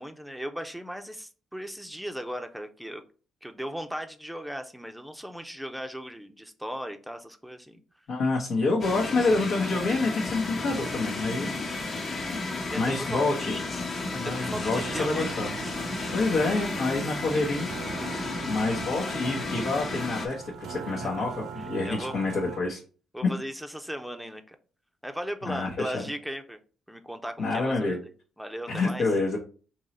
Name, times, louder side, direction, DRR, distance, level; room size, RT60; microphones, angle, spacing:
voice 1, 0.0-3.0 3.4-7.8 12.7-13.2 14.1-15.3 15.9-16.1 20.9-21.2 21.8-22.2 23.1-24.6 25.0-26.6 26.9-28.0 28.4-29.0, equal, ahead, 6 dB, 0.6 m, -37 dB
voice 2, 8.1-11.5 11.8-12.1 12.8-13.5 14.1-15.6 16.1-17.7 18.1-22.8 23.2-23.3 25.5-26.0 27.4-28.0 28.7-29.4, left 3 dB, 70° left, -3 dB, 1.0 m, -27 dB
sound 1, 8.8-20.3, left 3 dB, 45° left, 1.1 m, -33 dB
sound 2, 14.3-22.6, right 7 dB, 65° right, 0.5 m, -41 dB
3.8 x 3.0 x 4.2 m, 0.38 s
cardioid pair, 90°, 0 cm